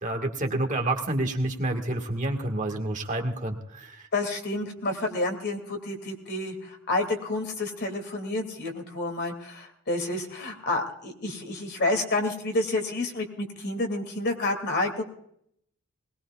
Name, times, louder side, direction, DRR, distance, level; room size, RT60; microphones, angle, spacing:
voice 1, 0.0-4.0, right 1 dB, 35° right, 3 dB, 1.6 m, -29 dB
voice 2, 4.1-15.0, left 2 dB, 50° left, 4 dB, 2.5 m, -29 dB
20.5 x 20.0 x 2.4 m, 0.69 s
head